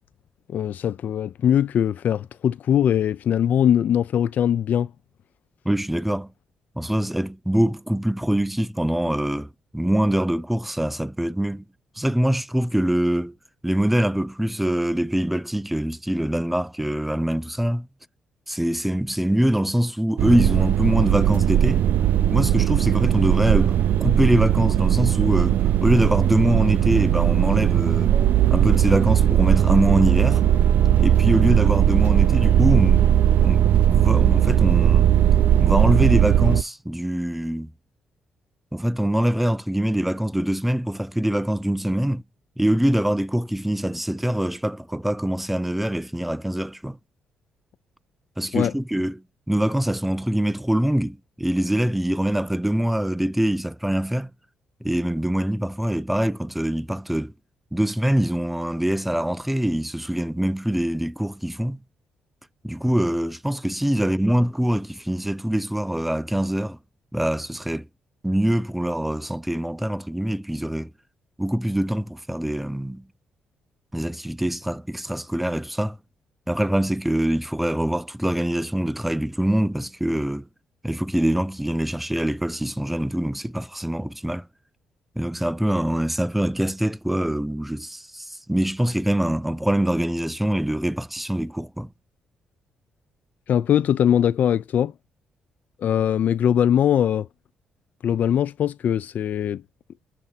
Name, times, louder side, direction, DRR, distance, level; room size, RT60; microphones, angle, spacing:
voice 1, 0.5-4.9 48.5-48.7 93.5-94.9 95.8-97.3 98.0-99.6, left 9 dB, 65° left, 0.4 m, -21 dB
voice 2, 5.7-6.3 6.8-11.6 12.0-13.4 13.6-17.9 18.5-21.8 22.3-28.1 28.5-30.4 31.0-33.1 33.4-35.1 35.6-37.7 38.7-42.2 42.6-47.0 48.4-54.3 54.8-57.3 57.7-61.8 62.6-66.8 67.1-67.9 68.2-70.9 71.4-73.0 73.9-76.0 76.5-80.5 80.8-84.5 85.2-91.9, right 1 dB, 5° right, 0.4 m, -24 dB
sound 1, 20.2-36.6, right 11 dB, 70° right, 0.3 m, -18 dB
6.6 x 2.7 x 5.6 m
cardioid pair, 80°, 3 cm